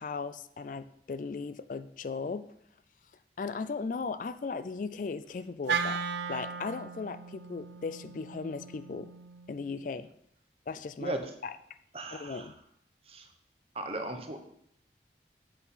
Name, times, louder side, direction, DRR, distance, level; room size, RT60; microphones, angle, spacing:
voice 1, 0.0-2.5 3.4-6.0 6.3-9.1 9.5-10.1 10.7-11.2 11.4-11.6 12.1-12.6, left 4 dB, 45° left, 13 dB, 0.3 m, -37 dB
Wind instrument woodwind instrument, 5.7-9.9, right 5 dB, 75° right, 0.5 m, -37 dB
voice 2, 11.0-11.3 11.9-12.5 13.1-13.3 13.7-14.4, right 2 dB, 35° right, 5 dB, 1.0 m, -36 dB
8.2 x 6.1 x 5.6 m, 0.72 s
head